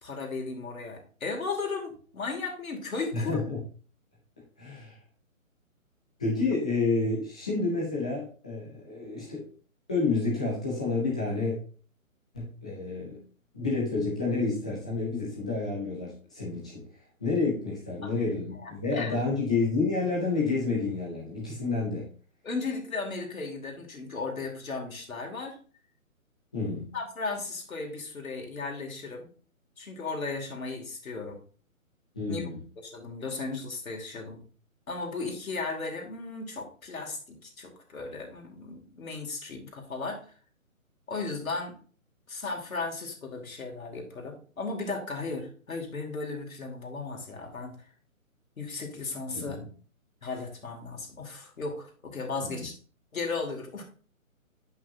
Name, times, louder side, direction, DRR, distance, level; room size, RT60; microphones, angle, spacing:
voice 1, 0.0-3.4 18.0-18.1 18.6-19.2 22.4-25.6 26.9-29.3 29.8-31.4 32.3-32.5 32.8-34.4 34.9-40.2 41.1-41.8 42.3-47.8 48.6-49.6 50.2-52.7 53.1-53.8, left 3 dB, 70° left, 1 dB, 2.7 m, -35 dB
voice 2, 3.1-3.6 4.6-5.0 6.2-9.5 9.9-11.6 12.3-13.2 13.5-16.9 17.2-22.1 26.5-27.0 32.1-32.6 49.3-49.7 52.4-52.7, left 3 dB, 5° left, -5 dB, 0.5 m, -29 dB
8.4 x 5.6 x 2.7 m, 0.40 s
hypercardioid pair, 150°, 42 cm